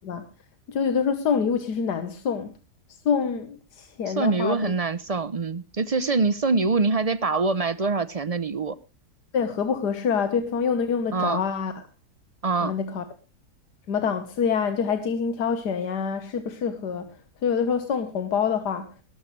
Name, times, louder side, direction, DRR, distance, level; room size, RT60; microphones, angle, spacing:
voice 1, 0.7-2.5 3.1-4.7 9.3-11.8 12.6-13.0 13.9-17.1 17.4-18.9, left 6 dB, 90° left, 1.8 m, -26 dB
voice 2, 4.1-8.8 11.1-11.4 12.4-12.7, right 3 dB, 45° right, 0.4 m, -24 dB
19.0 x 12.5 x 3.2 m
omnidirectional pair, 1.7 m